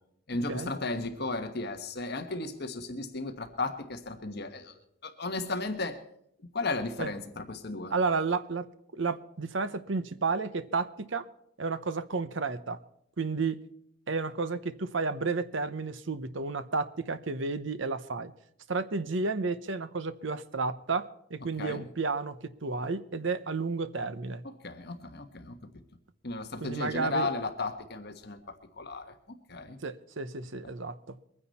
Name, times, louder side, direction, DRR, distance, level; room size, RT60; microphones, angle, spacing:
voice 1, 0.3-6.0 6.5-7.9 21.6-21.8 24.6-25.6 26.2-29.1 29.5-29.8, left 2 dB, 50° left, 6 dB, 1.4 m, -35 dB
voice 2, 7.9-8.7 8.9-11.3 11.6-12.8 13.2-13.6 14.1-18.3 18.7-24.4 26.6-27.3 29.8-31.0, right 4 dB, 65° right, 13 dB, 0.8 m, -32 dB
23.0 x 9.9 x 4.2 m, 0.73 s
head